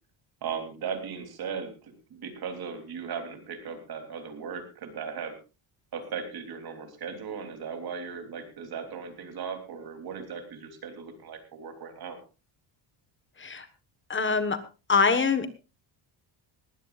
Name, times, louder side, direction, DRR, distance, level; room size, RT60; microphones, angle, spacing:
voice 1, 0.4-5.4 5.9-12.2, right 6 dB, 50° right, 6 dB, 3.3 m, -37 dB
voice 2, 14.1-14.6 14.9-15.5, left 4 dB, 25° left, 11 dB, 1.4 m, -24 dB
20.5 x 15.5 x 2.5 m, 0.31 s
cardioid pair, 145°, 49 cm